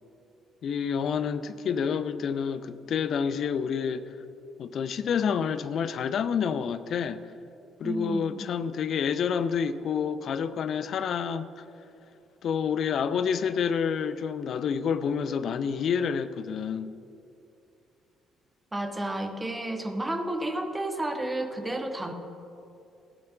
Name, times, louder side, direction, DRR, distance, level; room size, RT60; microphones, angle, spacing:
voice 1, 0.6-4.0 4.6-7.2 7.8-11.5 12.4-16.9, left 7 dB, 55° left, 0.6 m, -28 dB
voice 2, 7.8-8.4 18.7-22.1, right 1 dB, 15° right, 1.4 m, -31 dB
16.0 x 7.5 x 5.6 m
figure-of-eight pair, 45°, 0 cm